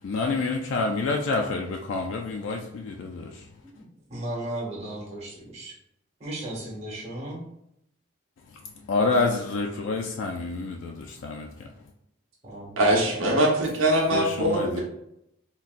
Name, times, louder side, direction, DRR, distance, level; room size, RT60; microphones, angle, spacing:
voice 1, 0.0-3.6 8.5-11.9 14.1-14.8, left 3 dB, 70° left, 0.3 m, -28 dB
voice 2, 3.7-5.7 6.2-7.4 12.4-12.8, right 1 dB, 30° right, 1.0 m, -35 dB
voice 3, 12.8-14.6, right 1 dB, 85° right, 1.0 m, -22 dB
3.8 x 2.1 x 2.4 m
head